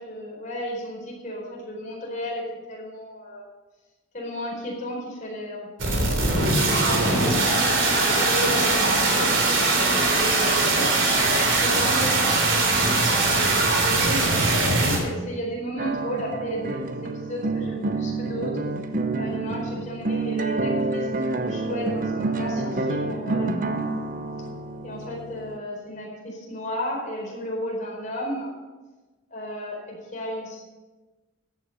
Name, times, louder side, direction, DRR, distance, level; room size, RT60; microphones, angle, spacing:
voice 1, 0.0-3.5 4.1-7.4 7.7-9.3 10.2-18.6 19.2-23.9 24.8-28.5 29.3-30.6, equal, 40° left, -2 dB, 4.5 m, -34 dB
sound 1, 5.8-15.0, right 2 dB, 65° right, 3.3 m, -21 dB
sound 2, 15.8-25.6, right 3 dB, 40° right, 0.7 m, -28 dB
14.0 x 9.3 x 5.6 m, 1.2 s
head